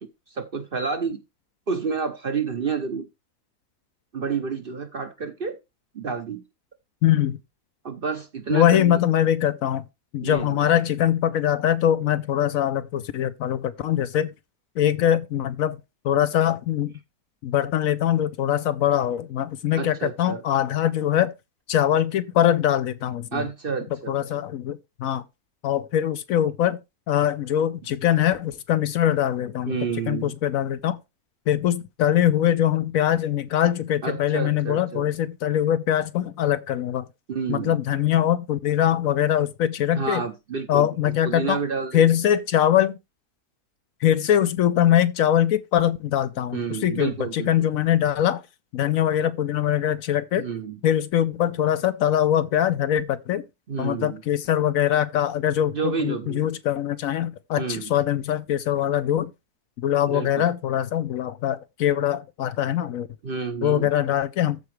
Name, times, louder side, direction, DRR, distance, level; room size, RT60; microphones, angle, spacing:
voice 1, 0.3-1.2 1.7-3.1 4.1-5.6 5.9-6.4 7.8-9.0 10.2-10.6 19.7-20.4 23.3-24.4 29.7-30.3 34.0-35.1 37.3-37.8 39.9-42.0 46.5-47.7 50.4-50.8 53.7-54.2 55.7-56.4 57.6-57.9 60.1-60.5 63.2-63.9, right 5 dB, 45° right, 0.8 m, -29 dB
voice 2, 7.0-7.4 8.5-9.8 10.1-14.3 14.8-15.8 16.0-16.9 17.4-21.3 21.7-23.5 24.1-25.2 25.6-26.8 27.1-29.8 30.1-31.0 31.5-37.0 37.5-40.2 40.7-41.6 41.9-43.0 44.0-48.4 48.7-50.5 50.8-53.4 53.8-59.3 59.8-63.1 63.6-64.6, left 11 dB, 70° left, 1.0 m, -22 dB
13.5 x 4.7 x 3.2 m
omnidirectional pair, 1.6 m